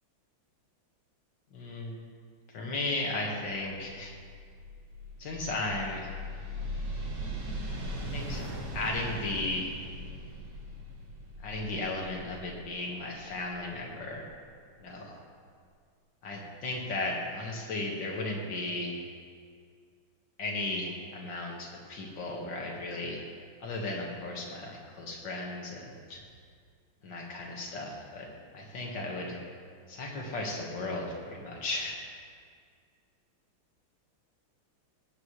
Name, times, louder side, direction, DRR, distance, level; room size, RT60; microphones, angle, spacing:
voice 1, 1.5-2.0 2.5-4.1 5.2-6.1 8.1-8.4 8.7-9.7 11.4-14.3 14.8-15.2 16.2-18.9 20.4-23.3 23.6-26.2 27.0-28.3 28.5-29.4 29.9-32.0, left 2 dB, 60° left, -1 dB, 2.2 m, -35 dB
sound 1, 4.2-14.2, equal, 70° right, 2.3 m, -40 dB
19.0 x 8.4 x 3.2 m, 2.1 s
omnidirectional pair, 2.3 m